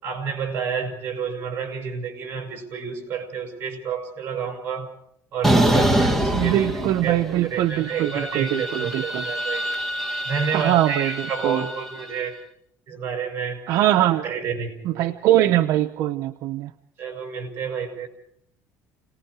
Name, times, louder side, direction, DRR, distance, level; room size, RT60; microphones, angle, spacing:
voice 1, 0.0-4.9 5.3-6.7 7.0-9.6 10.2-12.4 12.9-13.6 14.2-15.1 17.0-18.1, right 6 dB, 35° right, 3 dB, 6.8 m, -29 dB
sound 1, 5.4-7.4 7.7-12.0, right 1 dB, 5° left, 1.7 m, -25 dB
voice 2, 6.3-9.2 10.5-11.6 13.7-14.2 14.8-16.7, right 13 dB, 60° right, 6 dB, 0.8 m, -22 dB
30.0 x 19.5 x 4.9 m, 0.69 s
cardioid pair, 160°, 7 cm